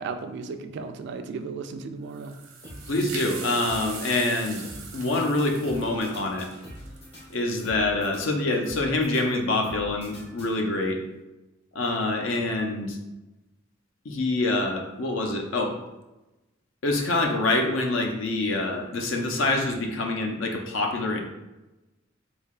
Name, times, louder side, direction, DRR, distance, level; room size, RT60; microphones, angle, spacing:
voice 1, 0.0-2.4, right 4 dB, 60° right, 7 dB, 0.3 m, -35 dB
sound 1, 2.1-7.6, right 5 dB, 85° right, 0.7 m, -41 dB
sound 2, 2.6-11.0, equal, 55° left, 1.2 m, -45 dB
voice 2, 2.9-4.6 4.9-6.5 7.3-11.0 11.7-13.0 14.0-15.8 16.8-21.2, left 2 dB, 70° left, 3 dB, 0.6 m, -26 dB
3.5 x 3.3 x 2.4 m, 1.0 s
head